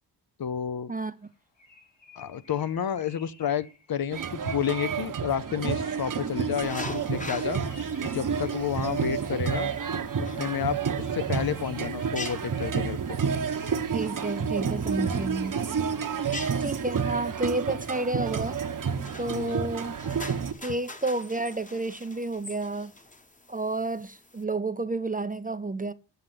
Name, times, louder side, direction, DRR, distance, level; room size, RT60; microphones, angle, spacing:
voice 1, 0.4-0.9 2.2-7.6 8.1-9.7 10.2-13.2 19.3-19.7, left 9 dB, 55° left, 0.6 m, -30 dB
Bird, 1.2-5.3 6.9-10.4, left 4 dB, 75° left, 3.5 m, -55 dB
sound 1, 4.1-20.5, right 6 dB, 50° right, 0.9 m, -30 dB
sound 2, 6.6-24.4, left 2 dB, 20° left, 1.1 m, -45 dB
voice 2, 13.9-15.6 16.6-18.6 19.2-19.9 20.6-22.9 23.5-25.9, right 2 dB, 20° right, 0.5 m, -30 dB
7.9 x 6.5 x 7.5 m
wide cardioid pair, 100°, 42 cm